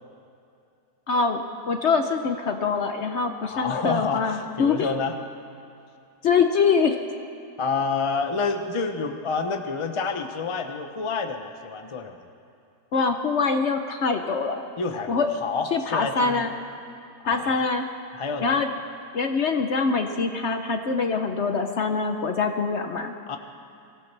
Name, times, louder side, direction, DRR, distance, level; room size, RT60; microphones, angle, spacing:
voice 1, 1.1-1.4 1.7-4.9 6.2-7.0 12.9-14.6 15.1-15.3 15.7-16.5 17.3-17.8 18.4-18.7 19.1-23.1, left 5 dB, 60° left, 6 dB, 0.8 m, -24 dB
voice 2, 3.4-5.1 7.6-12.2 14.8-16.4 17.2-17.6 18.1-18.6 23.3-23.4, left 4 dB, 40° left, 6 dB, 0.4 m, -28 dB
23.5 x 16.0 x 3.3 m, 2.6 s
omnidirectional pair, 1.8 m